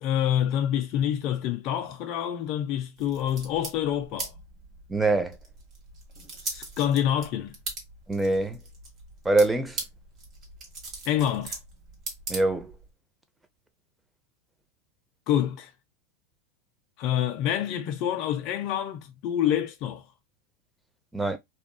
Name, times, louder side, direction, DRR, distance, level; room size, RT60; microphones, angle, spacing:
voice 1, 0.0-4.3 6.4-7.6 11.1-11.6 15.3-15.7 17.0-20.0, left 10 dB, 50° left, 0.4 m, -27 dB
sound 1, 3.0-12.9, right 3 dB, 40° right, 1.3 m, -40 dB
voice 2, 4.9-5.4 8.1-8.6 9.2-9.8 12.3-12.7 21.1-21.4, right 2 dB, 10° right, 0.5 m, -24 dB
2.8 x 2.3 x 2.2 m
hypercardioid pair, 110°, 0 cm